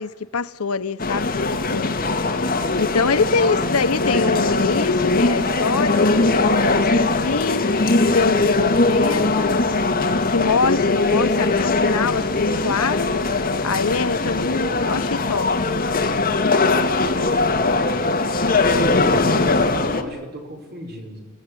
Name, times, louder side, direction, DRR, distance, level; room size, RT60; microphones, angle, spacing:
voice 1, 0.0-9.7 10.3-13.1 13.6-15.7, left 4 dB, 90° left, 0.9 m, -24 dB
sound 1, 1.0-20.0, left 3 dB, 40° left, 2.1 m, -20 dB
voice 2, 17.0-17.4 18.4-21.3, equal, 50° right, 5.9 m, -35 dB
29.5 x 18.0 x 9.9 m
head